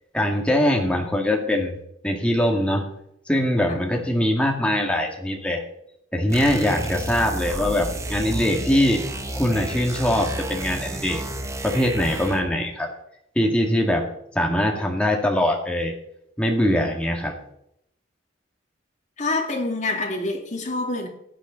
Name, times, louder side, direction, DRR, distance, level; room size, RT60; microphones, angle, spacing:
voice 1, 0.1-1.8 2.0-2.9 3.3-5.6 6.1-9.1 9.3-11.2 11.6-12.9 13.4-14.1 14.3-16.0 16.4-17.4, left 1 dB, 5° left, 2.2 m, -22 dB
sound 1, 6.3-12.5, right 1 dB, 15° right, 1.1 m, -31 dB
voice 2, 19.2-21.1, left 2 dB, 40° left, 2.5 m, -26 dB
16.0 x 10.0 x 4.1 m
head